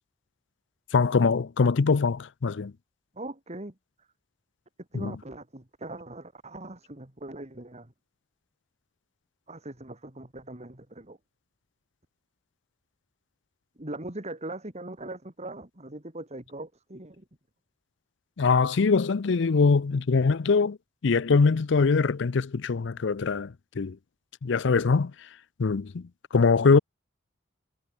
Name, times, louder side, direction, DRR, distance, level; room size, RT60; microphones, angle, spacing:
voice 1, 0.9-2.7 4.9-5.2 18.4-20.8 21.0-24.0 24.4-25.1 25.6-26.8, left 4 dB, 65° left, 0.5 m, -23 dB
voice 2, 3.1-3.7 4.9-7.9 9.5-11.2 13.8-17.2, right 2 dB, 35° right, 2.8 m, -40 dB
head